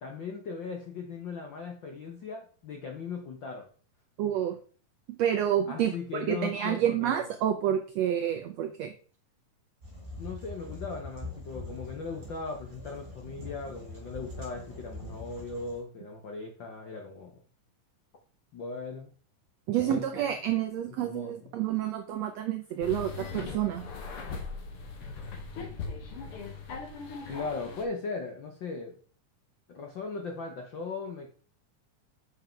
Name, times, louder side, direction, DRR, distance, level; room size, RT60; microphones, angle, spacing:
voice 1, 0.0-3.7 5.7-7.2 10.2-17.3 18.5-19.1 19.7-20.3 21.0-21.5 27.3-28.9 29.7-31.3, left 4 dB, 75° left, 3 dB, 1.0 m, -38 dB
voice 2, 4.2-4.5 5.2-8.9 19.7-23.9, right 10 dB, 80° right, 6 dB, 1.5 m, -29 dB
sound 1, 9.8-15.8, left 2 dB, 25° right, 3.1 m, -43 dB
sound 2, 22.8-27.8, left 4 dB, 55° left, 1.9 m, -39 dB
6.9 x 6.6 x 4.5 m, 0.42 s
omnidirectional pair, 3.9 m